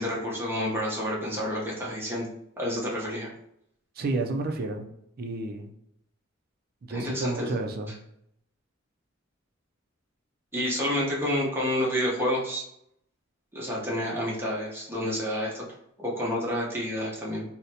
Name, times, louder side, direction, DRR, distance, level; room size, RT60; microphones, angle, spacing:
voice 1, 0.0-2.3 2.6-3.3 6.9-7.5 10.5-12.6 13.5-15.7 16.0-17.4, equal, 10° right, -5 dB, 0.8 m, -29 dB
voice 2, 4.0-4.9 5.2-5.7 6.9-8.0, right 2 dB, 50° right, 4 dB, 0.4 m, -30 dB
3.9 x 2.1 x 2.7 m, 0.74 s
head